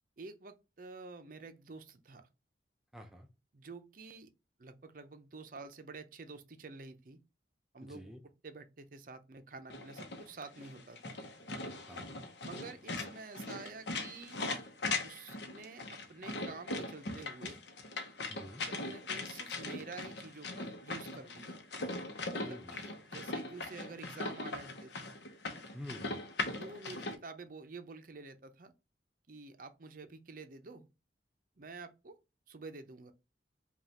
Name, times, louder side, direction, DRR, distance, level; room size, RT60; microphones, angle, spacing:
voice 1, 0.2-2.3 3.5-4.3 4.6-7.2 7.7-8.1 8.4-11.2 12.4-14.4 15.0-17.6 18.6-21.6 22.3-25.1 26.6-28.7 29.3-30.9 31.6-32.2 32.5-33.1, right 4 dB, 50° right, 0.6 m, -49 dB
voice 2, 2.9-3.3 7.8-8.2 11.9-12.2 18.3-18.6 22.4-22.8 25.7-26.2, equal, ahead, 0.4 m, -48 dB
sound 1, 9.7-27.2, left 3 dB, 75° left, 0.8 m, -40 dB
5.2 x 2.4 x 2.8 m
head